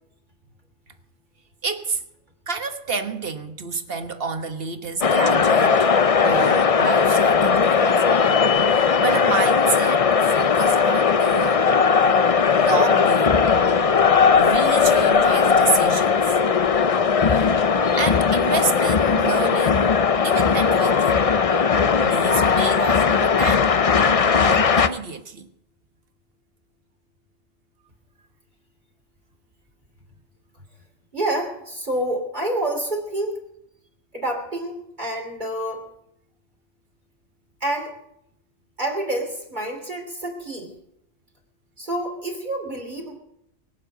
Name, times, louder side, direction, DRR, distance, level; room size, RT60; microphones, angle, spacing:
voice 1, 1.6-2.0 2.5-5.9 6.2-7.9 8.7-11.6 12.6-13.5 14.4-16.3 17.3-17.6 18.0-21.2 22.0-23.7 24.3-25.5, right 4 dB, 60° right, 1.5 m, -29 dB
sound 1, 5.0-24.9, left 6 dB, 40° left, 0.6 m, -18 dB
voice 2, 31.1-33.4 34.1-35.9 37.6-37.9 38.8-40.7 41.8-43.2, right 1 dB, 45° right, 3.1 m, -28 dB
22.0 x 7.7 x 8.3 m
omnidirectional pair, 1.1 m